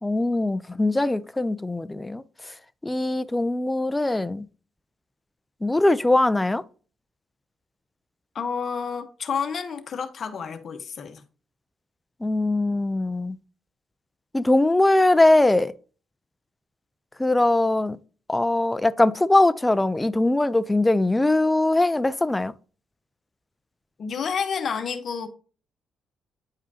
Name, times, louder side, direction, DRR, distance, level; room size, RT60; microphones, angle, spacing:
voice 1, 0.0-2.2 2.8-4.4 5.6-6.6 12.2-13.4 14.3-15.7 17.2-18.0 18.3-22.5, left 2 dB, 15° left, 0.4 m, -21 dB
voice 2, 8.3-11.2 24.0-25.3, left 6 dB, 50° left, 1.0 m, -30 dB
9.4 x 4.9 x 2.8 m
cardioid pair, 90°, 0 cm